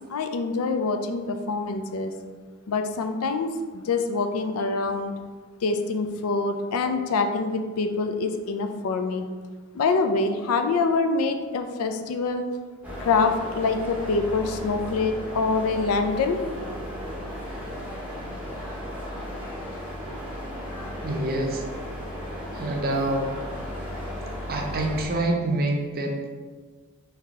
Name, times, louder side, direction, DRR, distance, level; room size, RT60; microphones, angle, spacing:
voice 1, 0.1-2.1 2.7-5.1 5.6-9.3 9.7-12.5 13.0-16.4, left 4 dB, 75° left, 6 dB, 0.4 m, -25 dB
sound 1, 12.8-25.1, equal, 5° right, 0.7 m, -35 dB
voice 2, 21.0-21.7 22.5-23.3 24.5-26.3, right 1 dB, 45° right, 1 dB, 0.5 m, -26 dB
3.8 x 2.8 x 3.5 m, 1.4 s
head